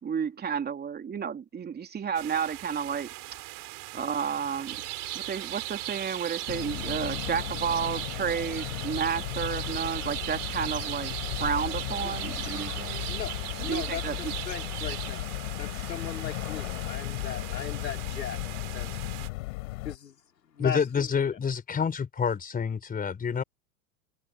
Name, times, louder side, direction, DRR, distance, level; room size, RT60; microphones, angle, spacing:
voice 1, 0.0-3.1 3.9-4.8 5.1-11.1 11.4-13.1 13.6-14.3, right 7 dB, 20° right, 3.2 m, -31 dB
sound 1, 2.1-19.3, right 22 dB, 40° right, 5.8 m, -43 dB
sound 2, 4.7-15.2, right 14 dB, 65° right, 6.1 m, -38 dB
sound 3, 6.5-20.0, left 20 dB, 55° left, 5.1 m, -35 dB
voice 2, 13.6-15.3 15.6-18.4 18.7-18.9 19.8-20.2 20.4-21.4, left 8 dB, 80° left, 4.2 m, -38 dB
voice 3, 20.6-23.4, left 6 dB, 15° left, 4.3 m, -28 dB
open air
hypercardioid pair, 105°, 49 cm